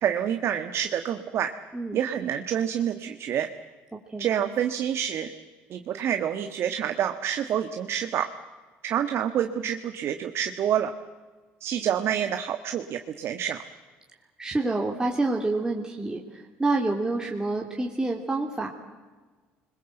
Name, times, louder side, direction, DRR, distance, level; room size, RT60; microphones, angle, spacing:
voice 1, 0.0-1.5 1.9-3.5 4.2-5.3 5.7-8.3 8.8-10.9 11.6-13.6, right 9 dB, 60° right, 7 dB, 1.5 m, -27 dB
voice 2, 14.4-18.7, right 2 dB, 15° right, 0 dB, 3.1 m, -27 dB
29.0 x 21.5 x 7.9 m, 1.3 s
supercardioid pair, 75°, 5 cm